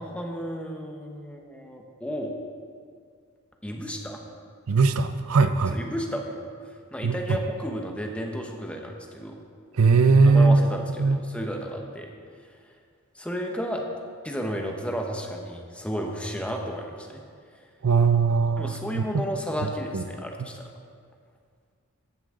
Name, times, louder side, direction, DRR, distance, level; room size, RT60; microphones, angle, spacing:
voice 1, 0.0-2.3 3.6-4.2 5.7-9.4 10.3-12.1 12.7-12.8 13.1-13.8 14.2-17.2 18.6-20.7, equal, 5° left, 2 dB, 1.0 m, -33 dB
voice 2, 4.7-5.8 7.0-7.1 9.8-10.6 11.0-11.2 17.8-19.2 19.9-20.0, right 4 dB, 75° right, 10 dB, 0.5 m, -20 dB
14.5 x 10.5 x 3.8 m, 2.1 s
head